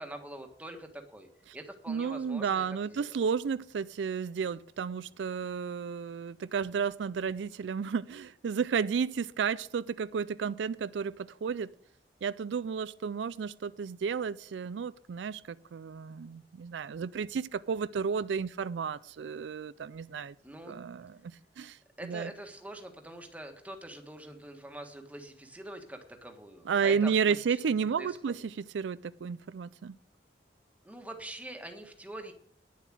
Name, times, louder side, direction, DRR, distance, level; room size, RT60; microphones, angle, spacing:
voice 1, 0.0-2.6 2.9-3.2 20.4-20.8 22.0-28.4 30.8-32.3, right 1 dB, 10° right, 1.5 m, -44 dB
voice 2, 1.9-11.7 12.2-20.3 20.7-22.3 26.7-30.0, right 6 dB, 85° right, 0.4 m, -32 dB
10.0 x 7.2 x 7.6 m
head